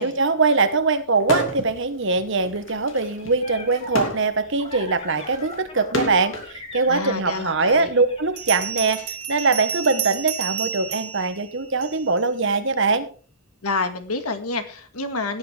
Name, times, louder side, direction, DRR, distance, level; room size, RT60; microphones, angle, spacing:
voice 1, 0.0-9.0 9.3-13.1, right 3 dB, 55° right, 10 dB, 1.3 m, -22 dB
sound 1, 1.2-1.8 2.1-6.5 7.4-9.0, equal, 60° left, 2.9 m, -30 dB
sound 2, 2.9-8.7, left 2 dB, 25° left, 2.6 m, -40 dB
voice 2, 6.9-7.9 13.6-15.4, left 3 dB, 90° left, 8 dB, 1.9 m, -28 dB
Bell, 7.1-7.2 8.4-12.2, right 9 dB, 85° right, 1.2 m, -31 dB
17.5 x 9.8 x 3.4 m, 0.38 s
head